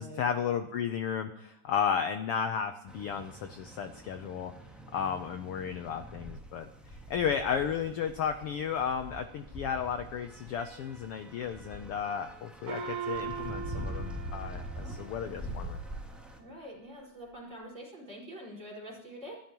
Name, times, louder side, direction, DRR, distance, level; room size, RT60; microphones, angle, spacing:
voice 1, 0.0-4.5 4.9-15.8, left 7 dB, 80° left, 8 dB, 1.3 m, -33 dB
sound 1, 2.9-16.4, right 1 dB, ahead, 2.0 m, -44 dB
Gong, 12.7-15.6, right 6 dB, 75° right, 2.9 m, -39 dB
voice 2, 14.8-15.6 16.4-19.3, equal, 20° right, -4 dB, 5.2 m, -46 dB
25.5 x 13.0 x 3.0 m, 0.81 s
omnidirectional pair, 3.5 m